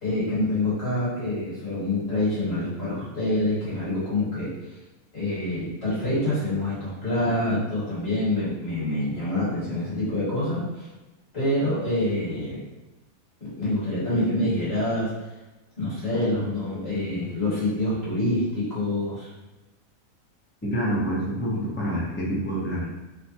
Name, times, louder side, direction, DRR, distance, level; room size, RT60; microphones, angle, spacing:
voice 1, 0.0-4.8 5.1-10.9 11.3-12.6 13.4-15.1 15.8-19.3, left 1 dB, 45° left, -10 dB, 1.6 m, -26 dB
voice 2, 20.6-22.8, equal, 15° left, -7 dB, 0.4 m, -27 dB
3.1 x 2.1 x 2.8 m, 1.1 s
omnidirectional pair, 1.5 m